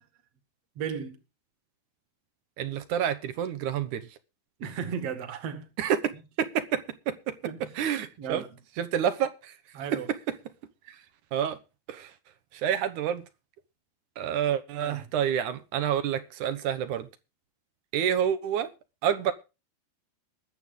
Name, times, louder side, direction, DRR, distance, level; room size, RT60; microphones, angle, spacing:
voice 1, 0.8-1.2 4.6-5.7 7.4-7.7 8.2-8.5 9.7-10.1 14.8-15.1, right 7 dB, 45° right, 2.5 m, -35 dB
voice 2, 2.6-4.1 5.8-7.3 7.8-8.4 8.8-9.5 9.9-10.2 10.9-11.0 11.3-11.6 11.9-12.1 12.5-13.2 14.2-17.1 17.9-18.7 19.0-19.3, right 9 dB, 65° right, 2.1 m, -28 dB
21.5 x 8.1 x 3.8 m
omnidirectional pair, 4.5 m